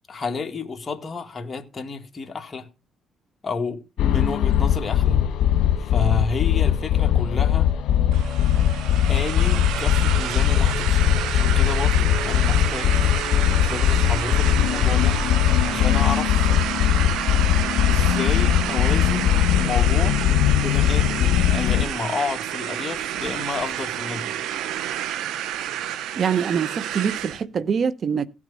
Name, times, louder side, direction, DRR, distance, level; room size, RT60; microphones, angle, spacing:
voice 1, 0.1-2.7 3.4-5.2 5.8-7.7 9.1-13.0 13.6-15.2 15.7-16.4 17.9-20.2 20.6-24.4, left 4 dB, 30° left, 2.0 m, -31 dB
sound 1, 4.0-21.9, left 10 dB, 80° left, 1.2 m, -20 dB
sound 2, 8.1-27.4, right 11 dB, 90° right, 0.8 m, -29 dB
voice 2, 26.2-28.3, right 7 dB, 50° right, 0.9 m, -24 dB
17.0 x 6.3 x 5.6 m
cardioid pair, 90°, 0 cm